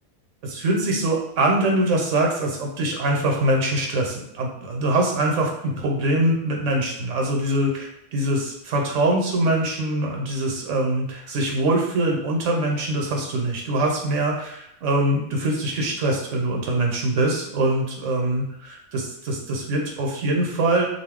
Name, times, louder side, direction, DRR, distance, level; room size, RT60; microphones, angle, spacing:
voice 1, 0.4-20.9, right 1 dB, 75° right, 0 dB, 1.0 m, -23 dB
2.6 x 2.4 x 3.5 m, 0.77 s
omnidirectional pair, 1.3 m